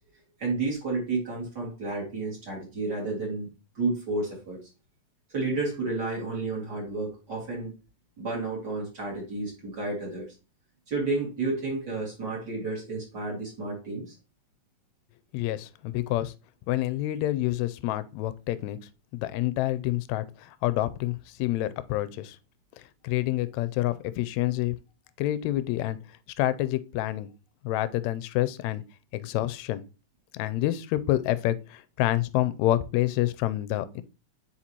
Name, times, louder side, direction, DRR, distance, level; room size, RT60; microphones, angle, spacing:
voice 1, 0.4-3.5 3.7-4.6 5.3-7.7 8.2-10.3 10.9-14.1, right 3 dB, 35° right, 2.7 m, -31 dB
voice 2, 15.3-16.3 16.7-18.8 19.1-20.2 20.6-22.4 23.0-24.8 25.2-26.0 26.4-27.3 27.6-28.8 29.1-29.8 30.3-34.0, left 15 dB, 80° left, 1.7 m, -27 dB
8.8 x 4.1 x 2.9 m
omnidirectional pair, 3.5 m